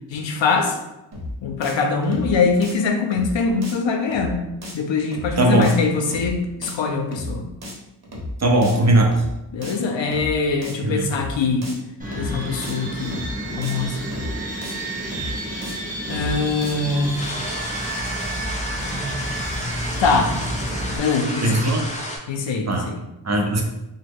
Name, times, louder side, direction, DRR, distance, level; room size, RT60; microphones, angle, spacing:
voice 1, 0.1-0.8 1.4-4.4 4.7-7.4 9.5-11.7 12.2-13.2 13.6-14.0 16.1-17.2 20.0-20.3 21.0-21.7 22.3-23.0, left 4 dB, 80° left, 4 dB, 0.5 m, -22 dB
sound 1, 1.1-1.3 1.6-1.7 2.0-2.3 2.6-2.7 3.1-3.3 3.6-3.7 4.0-4.3 4.6-4.7 5.1-5.3 5.6-5.7 6.0-6.3 6.6-6.7 7.1-7.3 7.6-7.7 8.0-8.3 8.6-8.7 9.1-9.3 9.6-9.7 10.0-10.3 10.6-10.7 11.1-11.3 11.6-11.7 12.0-12.3 12.6-12.7 13.1-13.3 13.6-13.7 14.0-14.3 14.6-14.7 15.1-15.3 15.6-15.7 16.0-16.3 16.6-16.7, left 1 dB, 60° right, 0.9 m, -33 dB
voice 2, 5.4-5.7 8.4-9.2 10.8-11.1 21.4-21.9 22.7-22.9 23.2-23.6, right 1 dB, 40° right, 2 dB, 0.5 m, -18 dB
sound 2, 12.0-21.0, right 1 dB, 20° right, 0.8 m, -30 dB
sound 3, 17.2-22.2, equal, 15° left, 0.6 m, -31 dB
3.0 x 2.1 x 3.4 m, 0.93 s
wide cardioid pair, 100°, 44 cm